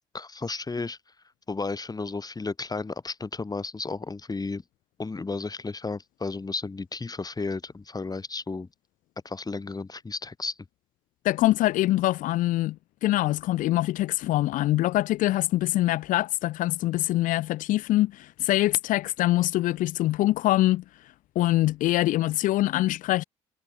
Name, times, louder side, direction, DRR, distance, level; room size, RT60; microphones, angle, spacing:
voice 1, 0.1-1.0 1.5-4.6 5.0-8.7 9.2-10.5, left 3 dB, 25° left, 4.8 m, -33 dB
voice 2, 11.2-12.8 13.0-20.8 21.4-23.2, left 16 dB, 70° left, 1.9 m, -24 dB
hypercardioid pair, 50°, 14 cm